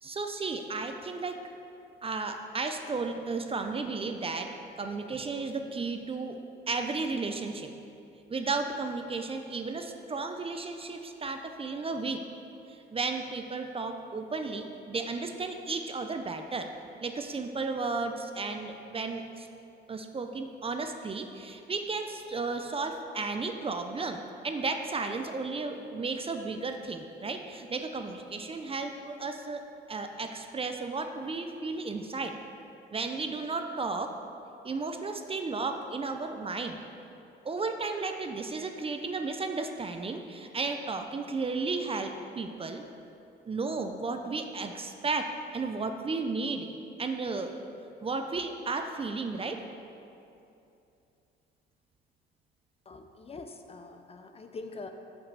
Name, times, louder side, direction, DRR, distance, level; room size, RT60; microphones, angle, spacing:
voice 1, 0.0-1.4 2.0-4.5 4.8-6.4 6.7-7.7 8.3-12.2 12.9-16.7 17.0-19.5 19.9-32.3 32.9-34.1 34.6-36.8 37.4-42.8 43.5-46.7 47.0-47.5 48.0-49.6, right 3 dB, 30° right, 6 dB, 0.5 m, -34 dB
voice 2, 52.9-54.9, left 3 dB, 30° left, 6 dB, 0.6 m, -44 dB
5.7 x 5.3 x 6.6 m, 2.7 s
cardioid pair, 90°, 20 cm